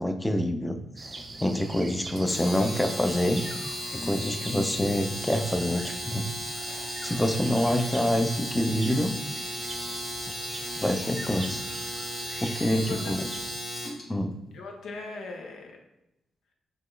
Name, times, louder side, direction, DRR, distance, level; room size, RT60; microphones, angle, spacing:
voice 1, 0.0-3.5 3.9-6.3 6.7-9.2 10.8-11.6 12.4-13.3 14.1-14.4, left 1 dB, 10° left, 6 dB, 0.5 m, -27 dB
sound 1, 1.0-13.6, right 3 dB, 40° right, 0.5 m, -42 dB
Domestic sounds home sounds, 2.2-14.0, equal, 65° left, 1.4 m, -36 dB
voice 2, 11.1-11.5 12.4-12.5 12.7-13.1 14.5-15.8, left 3 dB, 80° left, 2 dB, 0.7 m, -40 dB
4.1 x 3.0 x 3.2 m, 0.87 s
cardioid pair, 70°, 0 cm